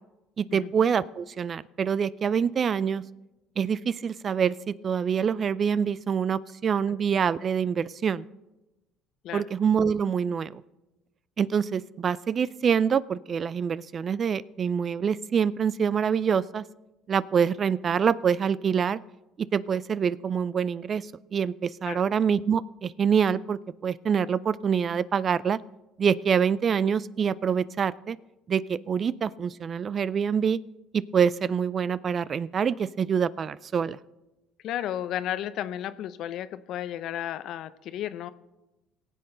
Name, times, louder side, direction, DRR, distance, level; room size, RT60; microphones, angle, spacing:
voice 1, 0.4-3.0 3.6-8.2 9.3-10.6 11.4-16.6 17.1-19.0 19.4-25.6 26.0-28.2 28.5-30.6 30.9-34.0, right 7 dB, 45° right, 20 dB, 0.3 m, -26 dB
voice 2, 34.6-38.3, left 11 dB, 65° left, 14 dB, 0.6 m, -33 dB
18.0 x 7.7 x 3.9 m, 1.0 s
hypercardioid pair, 70°, 0 cm